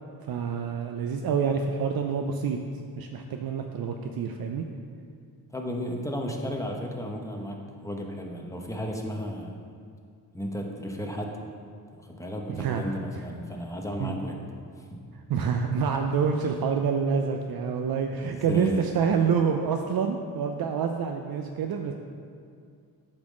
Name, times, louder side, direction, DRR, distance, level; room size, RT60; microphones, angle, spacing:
voice 1, 0.3-2.6 3.0-4.6 12.6-12.8 14.0-14.2 15.3-21.9, right 6 dB, 70° right, 4 dB, 0.6 m, -27 dB
voice 2, 5.5-9.6 10.3-11.4 12.0-14.4 14.8-15.0 18.5-18.9, equal, 10° left, 1 dB, 0.9 m, -34 dB
8.6 x 4.0 x 6.2 m, 2.3 s
cardioid pair, 95°, 37 cm